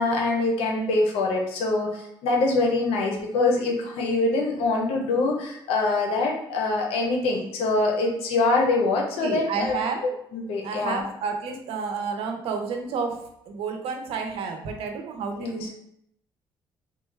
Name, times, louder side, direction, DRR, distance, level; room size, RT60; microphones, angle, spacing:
voice 1, 0.0-11.0 15.4-15.7, left 3 dB, 90° left, 1 dB, 0.7 m, -24 dB
voice 2, 9.2-10.0 10.6-13.2 13.5-15.7, right 5 dB, 80° right, 3 dB, 0.6 m, -30 dB
3.7 x 2.2 x 3.2 m, 0.75 s
cardioid pair, 90°, 10 cm